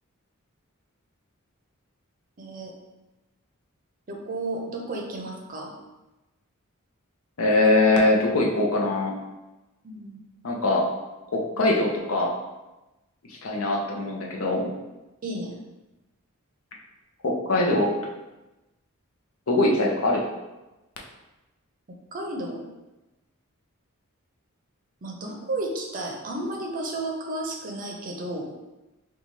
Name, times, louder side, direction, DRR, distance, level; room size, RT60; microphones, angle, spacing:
voice 1, 2.4-2.7 4.1-5.7 9.8-10.2 15.2-15.6 22.1-22.7 25.0-28.5, right 2 dB, 40° right, 0 dB, 0.6 m, -32 dB
voice 2, 7.4-9.1 10.4-10.9 11.3-12.3 13.3-14.7 17.2-18.0 19.5-20.2, left 2 dB, 70° left, -1 dB, 0.6 m, -22 dB
4.0 x 2.3 x 3.1 m, 1.0 s
head